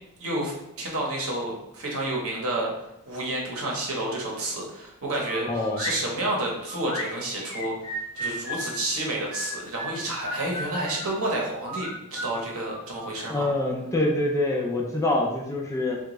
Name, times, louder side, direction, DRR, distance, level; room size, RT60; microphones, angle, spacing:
voice 1, 0.2-2.7 3.1-7.7 8.1-13.5, right 1 dB, 65° right, -2 dB, 0.9 m, -30 dB
sound 1, 5.2-6.0 6.7-8.7 9.3-11.1 11.6-13.5, left 1 dB, 80° left, 0.9 m, -35 dB
voice 2, 5.5-5.8 13.2-16.0, left 2 dB, 15° left, -1 dB, 0.4 m, -25 dB
3.5 x 2.3 x 3.0 m, 0.85 s
head